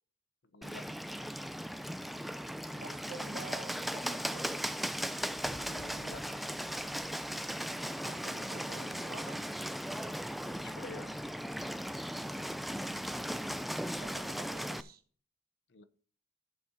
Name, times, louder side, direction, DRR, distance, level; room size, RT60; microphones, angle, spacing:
voice 1, 0.4-0.8 5.4-6.2 10.4-11.2 15.7-15.8, left 3 dB, 70° left, 0.7 m, -49 dB
Bird, 0.6-14.8, equal, ahead, 0.3 m, -37 dB
voice 2, 2.8-4.6 8.0-9.4 13.9-15.0, right 2 dB, 50° right, 1.1 m, -48 dB
14.0 x 8.3 x 2.7 m
head